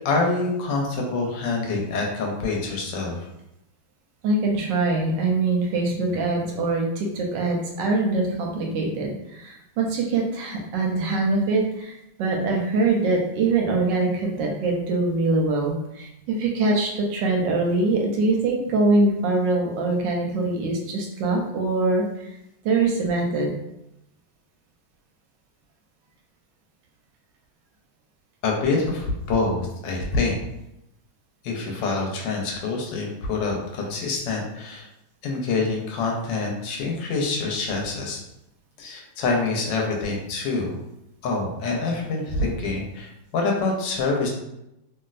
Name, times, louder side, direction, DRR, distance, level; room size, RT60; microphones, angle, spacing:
voice 1, 0.0-3.3 28.4-30.4 31.4-34.9 35.2-38.2 38.8-40.8 41.2-44.3, left 3 dB, 75° left, 0 dB, 1.3 m, -26 dB
voice 2, 4.2-22.3 22.6-23.5, right 3 dB, 75° right, 0 dB, 1.1 m, -23 dB
3.1 x 2.7 x 2.4 m, 0.85 s
omnidirectional pair, 2.1 m